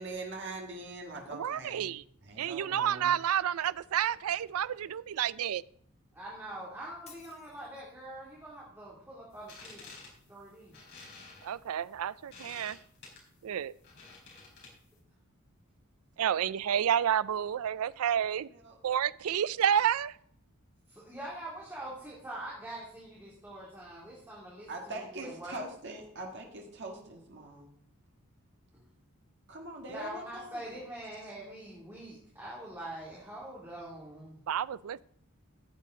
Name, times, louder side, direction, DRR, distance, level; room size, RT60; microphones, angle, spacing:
voice 1, 0.0-2.0 2.2-3.1 16.2-16.3 18.2-18.8 24.7-27.7 29.5-30.6, right 2 dB, 55° right, 0 dB, 1.6 m, -43 dB
voice 2, 1.3-2.0 2.4-5.6 11.4-12.8 13.4-13.7 16.2-18.5 18.8-20.1 34.5-35.0, right 9 dB, 75° right, 19 dB, 0.4 m, -30 dB
voice 3, 6.1-9.9 10.3-10.8 20.9-25.6 28.7-28.9 29.9-34.5, right 1 dB, 10° right, -6 dB, 2.7 m, -44 dB
Shatter, 7.1-8.0, left 6 dB, 30° left, 1.5 m, -56 dB
sound 1, 9.3-15.0, left 3 dB, 55° left, 4.7 m, -52 dB
14.5 x 8.4 x 3.8 m, 0.67 s
head